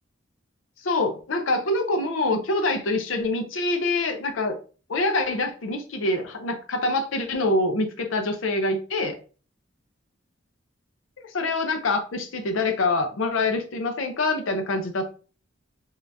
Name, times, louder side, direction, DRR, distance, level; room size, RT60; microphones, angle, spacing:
voice 1, 0.8-4.6 4.9-9.2 11.3-15.1, left 2 dB, 75° left, 6 dB, 0.6 m, -25 dB
3.7 x 2.6 x 3.3 m, 0.38 s
head